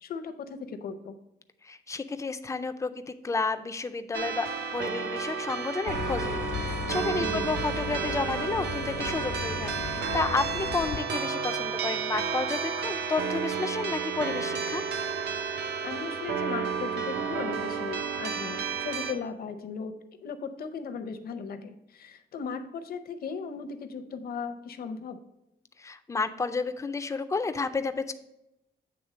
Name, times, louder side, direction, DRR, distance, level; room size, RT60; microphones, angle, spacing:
voice 1, 0.0-1.1 7.2-7.5 15.8-20.0 20.2-25.2, left 5 dB, 60° left, 9 dB, 0.6 m, -37 dB
voice 2, 1.6-14.8 25.8-28.1, left 4 dB, 15° left, 10 dB, 0.3 m, -31 dB
sound 1, 4.1-19.1, right 6 dB, 70° right, 0.7 m, -32 dB
sound 2, 5.9-11.0, left 4 dB, 85° left, 1.1 m, -36 dB
8.6 x 3.4 x 4.9 m, 0.90 s
wide cardioid pair, 175°, 17 cm